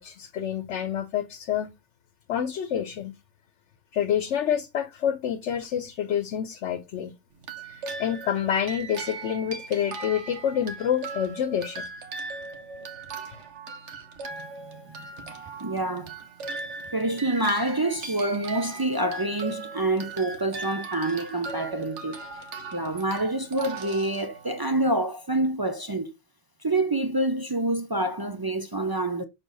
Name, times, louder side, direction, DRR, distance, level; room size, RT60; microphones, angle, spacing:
voice 1, 0.0-1.7 2.3-3.1 3.9-7.1 7.6-11.8, left 9 dB, 85° left, 1.0 m, -28 dB
sound 1, 7.4-24.8, right 3 dB, 80° right, 1.4 m, -39 dB
voice 2, 14.3-15.1 15.6-16.1 16.9-22.2 22.7-26.1 26.6-29.2, right 1 dB, 35° right, 0.3 m, -27 dB
6.4 x 3.8 x 3.9 m
omnidirectional pair, 1.2 m